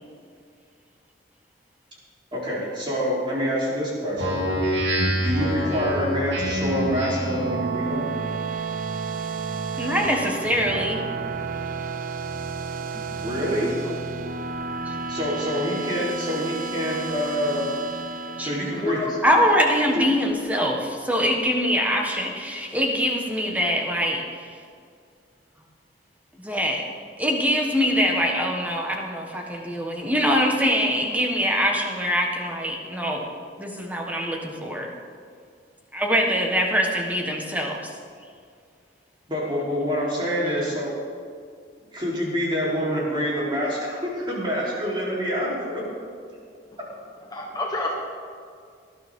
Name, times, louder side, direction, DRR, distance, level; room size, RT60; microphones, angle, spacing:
voice 1, 2.3-4.3 5.2-8.0 13.1-13.7 15.1-17.6 18.4-19.0 19.9-20.1 39.3-40.9 41.9-45.9 46.8-46.9, equal, 25° right, -5 dB, 3.8 m, -26 dB
Speech synthesizer, 4.2-7.5, equal, 75° right, 2.9 m, -25 dB
sound 1, 7.0-19.4, right 4 dB, 50° right, 0.8 m, -32 dB
voice 2, 9.8-11.0 14.8-14.9 18.4-18.5 19.2-24.2 26.4-26.8 27.2-33.3 33.6-34.9 35.9-37.8, equal, 10° right, 0 dB, 1.4 m, -23 dB
voice 3, 18.7-19.2 47.3-47.9, left 2 dB, 20° left, -1 dB, 1.3 m, -28 dB
19.0 x 12.0 x 3.8 m, 2.2 s
head